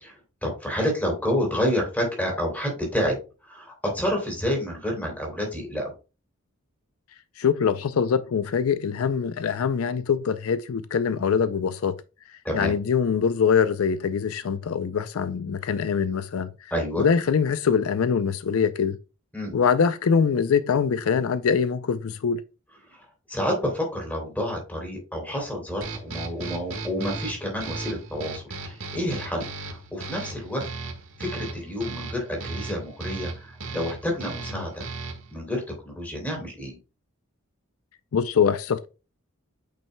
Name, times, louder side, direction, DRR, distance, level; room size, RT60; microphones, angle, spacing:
voice 1, 0.0-3.2 3.4-5.9 12.4-12.7 16.7-17.1 19.3-19.5 22.9-30.7 31.2-34.8 35.3-36.8, equal, 10° left, 3.0 m, -29 dB
voice 2, 7.4-11.9 12.5-16.5 17.0-19.0 19.5-22.4 38.1-38.9, left 6 dB, 80° left, 0.4 m, -23 dB
sound 1, 25.8-35.4, right 3 dB, 65° right, 1.5 m, -36 dB
8.8 x 5.4 x 2.2 m
head